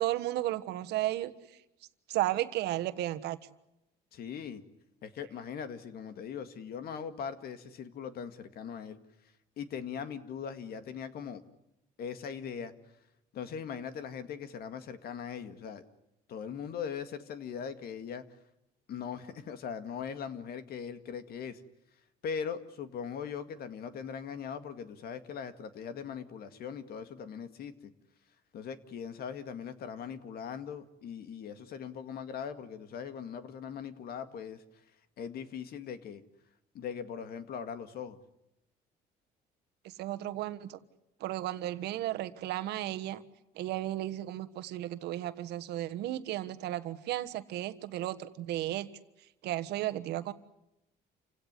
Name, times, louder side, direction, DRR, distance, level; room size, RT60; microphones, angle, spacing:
voice 1, 0.0-1.3 2.1-3.4 39.8-40.8 41.2-43.2 43.5-48.9 49.4-50.3, right 14 dB, 80° right, 12 dB, 1.4 m, -34 dB
voice 2, 4.1-4.6 5.0-9.0 9.6-11.4 12.0-12.7 13.3-15.8 16.3-18.2 18.9-21.6 22.2-27.9 28.5-34.6 35.2-36.2 36.7-38.2, left 7 dB, 65° left, 10 dB, 2.1 m, -40 dB
28.5 x 17.0 x 9.7 m, 0.88 s
cardioid pair, 110°, 17 cm